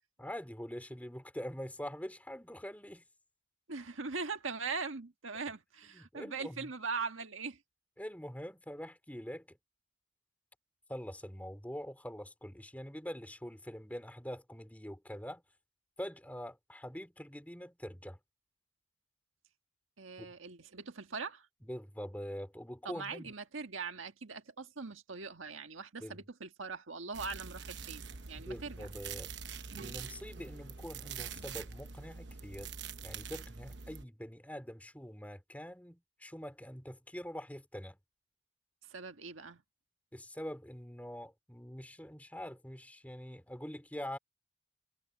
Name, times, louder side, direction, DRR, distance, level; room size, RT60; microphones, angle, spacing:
voice 1, 0.2-3.0 5.8-6.7 8.0-9.6 10.9-15.4 16.0-18.2 20.2-20.3 21.6-23.3 26.0-26.2 28.4-29.3 29.7-32.7 33.0-38.0 40.1-44.2, equal, 10° left, 3.0 m, -44 dB
voice 2, 3.7-7.6 20.0-21.5 22.9-28.9 38.9-39.6, right 4 dB, 90° right, 1.7 m, -41 dB
sound 1, 27.1-34.1, right 6 dB, 65° right, 1.0 m, -45 dB
head